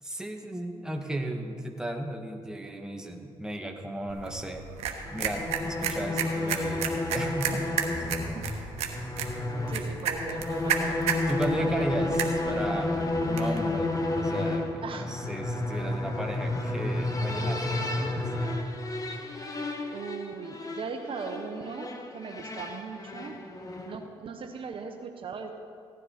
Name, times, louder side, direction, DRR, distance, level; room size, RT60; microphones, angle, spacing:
voice 1, 0.0-4.6 5.1-8.2 9.6-9.9 11.3-13.9 14.2-18.3, right 1 dB, 5° right, 3 dB, 1.5 m, -35 dB
sound 1, 4.1-13.6, right 7 dB, 80° right, 1.1 m, -34 dB
sound 2, 5.0-24.0, left 2 dB, 35° left, 1.6 m, -31 dB
voice 2, 9.7-11.0 11.2-12.1 14.8-15.1 19.9-23.4 23.8-25.5, right 5 dB, 55° right, 5 dB, 1.1 m, -39 dB
16.0 x 9.9 x 4.4 m, 2.5 s
supercardioid pair, 70°, 11 cm